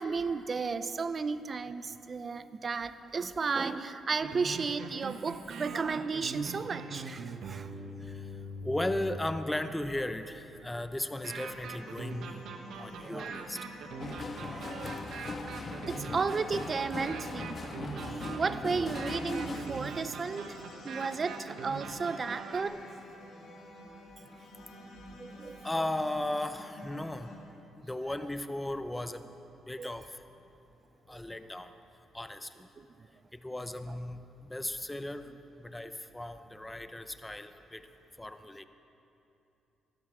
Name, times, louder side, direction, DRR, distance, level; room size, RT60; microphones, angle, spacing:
voice 1, 0.0-7.7 13.0-13.3 14.5-15.0 15.8-20.6 20.8-22.8 24.6-24.7 25.2-25.6 29.8-29.9 31.1-31.2 32.8-33.1 33.9-34.0, right 4 dB, 40° right, 13 dB, 0.6 m, -34 dB
sound 1, 4.1-9.4 11.2-22.6, right 4 dB, 70° right, 1.1 m, -42 dB
voice 2, 8.6-12.4 12.8-13.6 25.6-27.3 27.8-29.3 29.7-30.0 31.1-31.7 32.1-32.5 33.4-35.3 35.6-37.8 38.2-38.6, left 1 dB, 10° left, 10 dB, 0.7 m, -36 dB
sound 2, 11.4-27.4, equal, 85° left, 3.0 m, -50 dB
sound 3, 14.0-19.6, left 3 dB, 35° left, 1.3 m, -39 dB
17.5 x 13.0 x 5.0 m, 2.9 s
cardioid pair, 90°, 0 cm